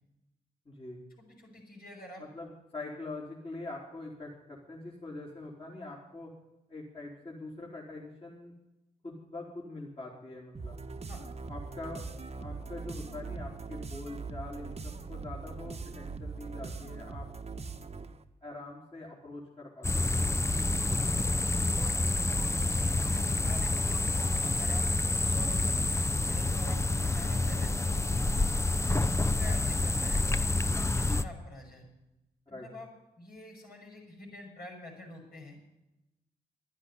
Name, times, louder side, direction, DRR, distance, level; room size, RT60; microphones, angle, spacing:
voice 1, 0.7-1.0 2.2-6.3 6.7-8.5 9.0-10.8 11.5-12.0 12.3-17.3 18.4-20.3 20.8-21.0 22.0-22.1 32.5-32.7, left 2 dB, 35° left, -4 dB, 3.8 m, -44 dB
voice 2, 1.2-2.2 11.1-11.2 20.8-21.0 21.7-22.0 22.7-24.9 25.2-28.3 29.0-31.9 32.5-32.9 33.2-35.6, left 1 dB, 70° left, -2 dB, 6.3 m, -47 dB
sound 1, 10.5-18.2, right 4 dB, 40° right, 1.2 m, -41 dB
sound 2, 19.8-31.2, left 2 dB, 15° left, 0.8 m, -28 dB
11.5 x 10.0 x 9.8 m, 0.93 s
supercardioid pair, 50°, 16 cm